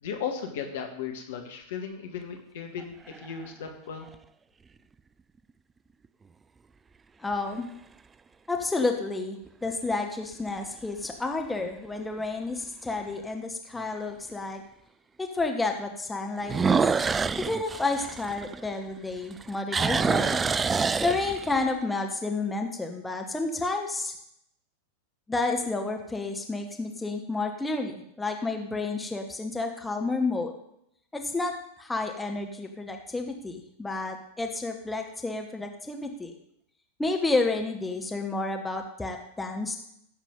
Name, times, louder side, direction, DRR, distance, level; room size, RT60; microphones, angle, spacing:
voice 1, 0.0-4.1, left 7 dB, 55° left, 3 dB, 1.7 m, -36 dB
sound 1, 2.8-3.5 4.1-4.2 9.5-9.9 10.4-10.5 11.0-11.1 11.4-11.5 13.0-13.1 16.4-19.0 19.3-21.7, right 5 dB, 15° right, 0.3 m, -27 dB
voice 2, 7.2-7.7 8.5-14.6 15.2-16.9 17.4-20.4 21.0-24.1 25.3-30.5 31.1-36.3 37.0-39.8, left 3 dB, 10° left, 3 dB, 1.2 m, -30 dB
15.5 x 7.3 x 3.8 m, 0.75 s
figure-of-eight pair, 90°, 0 cm